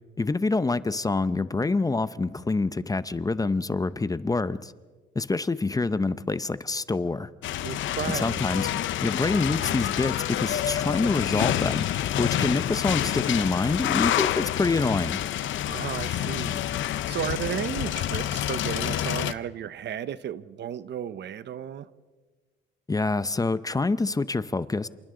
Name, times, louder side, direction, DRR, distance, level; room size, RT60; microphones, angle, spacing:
voice 1, 0.2-4.7 5.2-7.3 8.1-8.7 9.0-11.9 12.2-15.2 22.9-24.9, left 3 dB, 20° left, 0.7 m, -26 dB
sound 1, 7.4-19.3, left 12 dB, 75° left, 0.8 m, -28 dB
voice 2, 7.6-8.4 15.7-16.6 17.1-21.9, right 9 dB, 60° right, 0.9 m, -34 dB
27.5 x 27.5 x 3.8 m
cardioid pair, 90°, 20 cm